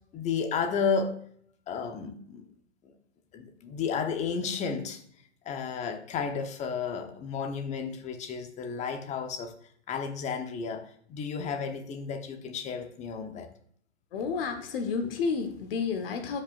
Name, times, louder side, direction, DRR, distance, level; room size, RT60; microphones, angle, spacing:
voice 1, 0.1-1.2 1.7-2.4 2.8-2.9 3.3-5.0 5.4-9.5 9.9-13.5, left 6 dB, 20° left, 7 dB, 1.0 m, -32 dB
voice 2, 14.1-16.4, left 5 dB, 50° left, 6 dB, 1.3 m, -30 dB
12.5 x 5.5 x 2.5 m, 0.63 s
hypercardioid pair, 125°, 35 cm